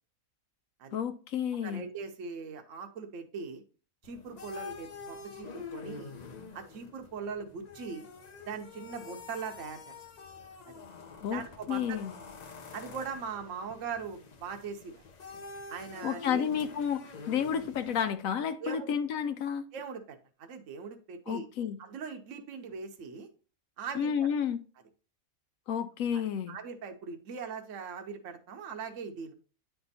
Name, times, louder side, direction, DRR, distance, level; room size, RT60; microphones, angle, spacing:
voice 1, 0.9-1.9 11.2-11.4 11.7-12.1 16.0-19.6 21.3-21.8 23.9-24.6 25.7-26.6, left 8 dB, 75° left, 1.0 m, -31 dB
voice 2, 1.6-3.6 4.0-6.1 6.5-8.1 8.5-9.9 10.6-10.8 11.3-12.0 12.7-15.0 15.7-16.4 18.6-18.9 19.7-21.5 21.8-23.3 23.8-24.3 26.1-26.2 26.5-29.3, right 5 dB, 65° right, 1.2 m, -40 dB
sound 1, 4.0-18.1, left 5 dB, 45° left, 0.5 m, -47 dB
9.6 x 3.4 x 4.1 m
omnidirectional pair, 1.5 m